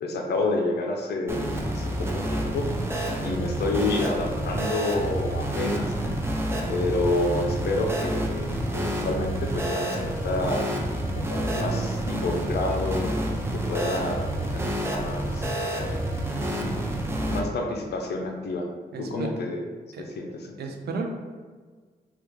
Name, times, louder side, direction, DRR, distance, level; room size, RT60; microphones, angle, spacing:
voice 1, 0.0-2.7 3.2-6.2 6.7-10.7 11.1-13.2 13.5-16.0 16.6-16.9 17.2-18.7 19.0-19.6 20.0-20.6, left 2 dB, 85° left, 3 dB, 0.5 m, -29 dB
sound 1, 1.3-17.4, right 1 dB, 15° right, 0.4 m, -28 dB
voice 2, 11.5-11.9 18.9-19.3 19.9-20.1 20.6-21.1, right 4 dB, 80° right, 3 dB, 0.5 m, -33 dB
3.4 x 2.3 x 3.1 m, 1.5 s
wide cardioid pair, 135°, 16 cm